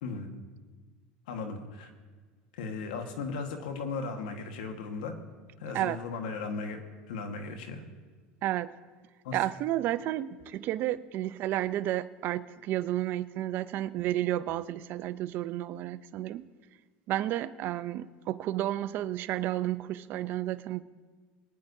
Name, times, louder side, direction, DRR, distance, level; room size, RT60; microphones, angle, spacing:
voice 1, 1.3-1.9 2.5-5.1 5.6-6.8 7.1-7.8 9.2-9.4, left 4 dB, 85° left, 5 dB, 1.5 m, -36 dB
voice 2, 8.4-8.7 9.3-16.4 17.1-20.8, right 14 dB, 50° right, 14 dB, 0.5 m, -31 dB
23.5 x 9.7 x 2.7 m, 1.5 s
supercardioid pair, 120°, 4 cm